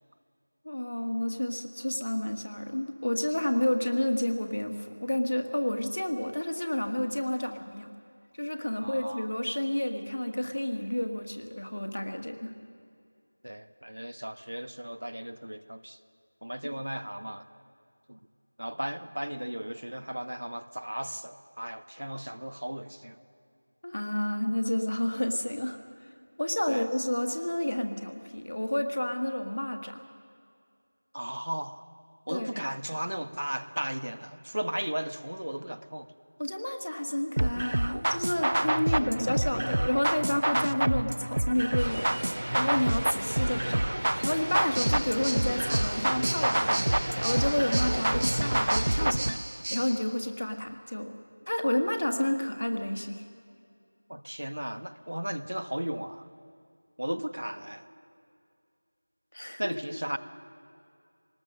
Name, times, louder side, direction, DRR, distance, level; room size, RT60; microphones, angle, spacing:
voice 1, 0.6-7.9 8.4-12.5 16.6-16.8 23.8-25.8 26.4-30.0 32.3-32.6 36.4-42.1 42.5-43.8 44.2-46.8 47.2-49.4 49.7-51.1 51.5-53.2 57.1-57.2 59.3-59.7, left 1 dB, 45° left, 5 dB, 1.5 m, -30 dB
voice 2, 8.8-9.3 13.4-16.0 16.4-17.4 18.1-18.2 18.6-23.2 26.7-26.9 31.1-31.8 32.3-36.1 38.9-39.4 54.1-56.3 57.0-57.8 59.6-60.2, right 1 dB, 85° right, 12 dB, 1.1 m, -36 dB
sound 1, 37.4-49.4, right 1 dB, 35° right, 0.4 m, -28 dB
sound 2, 41.8-49.1, right 1 dB, 50° right, 2.1 m, -36 dB
sound 3, 44.4-49.8, right 1 dB, 15° right, 1.0 m, -36 dB
22.0 x 19.0 x 6.5 m, 2.3 s
figure-of-eight pair, 180°, 0 cm